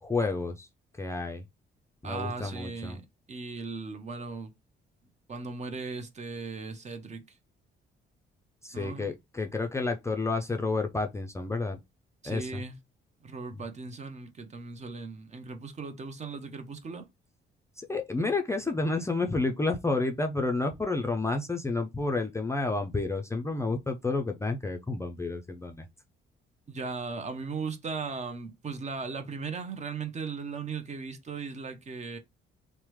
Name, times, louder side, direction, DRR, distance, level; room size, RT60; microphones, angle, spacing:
voice 1, 0.0-0.7 1.0-1.4 2.0-3.0 8.6-11.8 12.2-12.6 17.8-25.8, left 3 dB, 15° left, 0.4 m, -30 dB
voice 2, 2.0-3.0 3.3-4.5 5.3-7.4 8.7-9.1 12.2-12.8 13.2-17.1 26.7-32.2, right 4 dB, 35° right, 0.6 m, -37 dB
3.2 x 2.1 x 3.0 m
cardioid pair, 90°, 20 cm